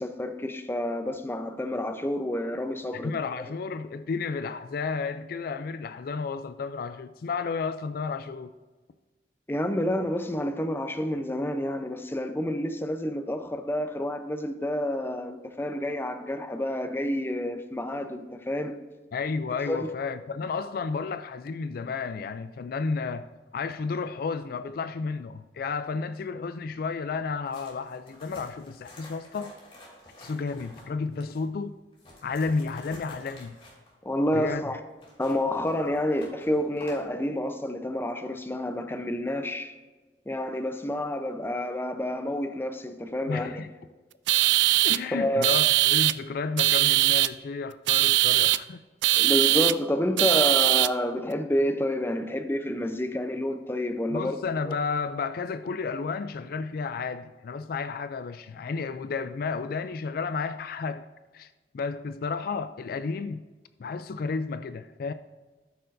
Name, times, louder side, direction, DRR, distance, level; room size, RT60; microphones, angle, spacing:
voice 1, 0.0-3.2 9.5-18.8 19.7-19.9 34.0-34.8 35.2-39.7 40.3-43.6 45.1-45.5 49.2-54.4 54.6-54.7, left 1 dB, 15° left, 0.6 m, -29 dB
voice 2, 2.9-8.5 19.1-29.5 30.2-31.7 32.2-33.6 34.3-34.6 43.3-43.7 44.8-48.8 54.1-61.1 61.3-63.4 63.8-65.1, left 4 dB, 55° left, 0.3 m, -32 dB
sound 1, 27.4-31.4 31.9-37.1, left 1 dB, 30° left, 2.8 m, -50 dB
sound 2, 44.3-45.0 45.4-46.1 46.6-47.3 47.9-48.6 49.0-49.7 50.2-50.9, right 17 dB, 90° right, 0.3 m, -21 dB
13.5 x 6.6 x 2.6 m
head